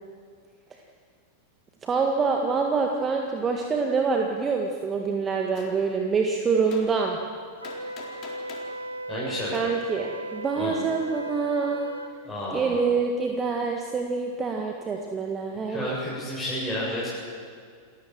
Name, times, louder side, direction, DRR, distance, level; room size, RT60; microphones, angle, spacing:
voice 1, 1.8-7.2 9.5-11.9 12.5-15.9, right 4 dB, 20° right, 2 dB, 1.8 m, -26 dB
Gunshot gunfire, 5.5-5.7 6.7-6.9 7.6-8.7 9.5-9.7, left 6 dB, 35° left, 3.9 m, -43 dB
Wind instrument woodwind instrument, 7.6-12.1, right 1 dB, 85° right, 1.4 m, -36 dB
voice 2, 9.1-9.7 10.6-10.7 12.2-12.7 15.7-17.1, equal, 5° left, -10 dB, 7.7 m, -31 dB
28.5 x 14.5 x 7.5 m, 2.1 s
figure-of-eight pair, 90°, 0 cm